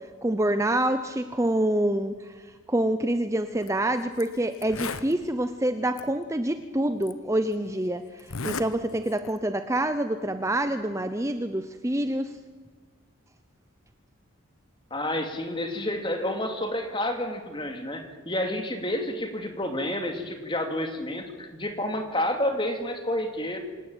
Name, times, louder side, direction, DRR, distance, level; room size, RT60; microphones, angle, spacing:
voice 1, 0.2-2.3 2.7-12.4, right 1 dB, 15° right, 9 dB, 0.7 m, -26 dB
Zipper (clothing), 3.5-3.7 4.2-4.3 4.5-5.1 6.0-6.1 7.0-7.1 8.2-8.7 9.0-9.4, left 4 dB, 85° left, 1.3 m, -34 dB
voice 2, 14.9-23.6, left 1 dB, 25° left, 5 dB, 2.7 m, -29 dB
26.5 x 18.0 x 9.0 m, 1.5 s
head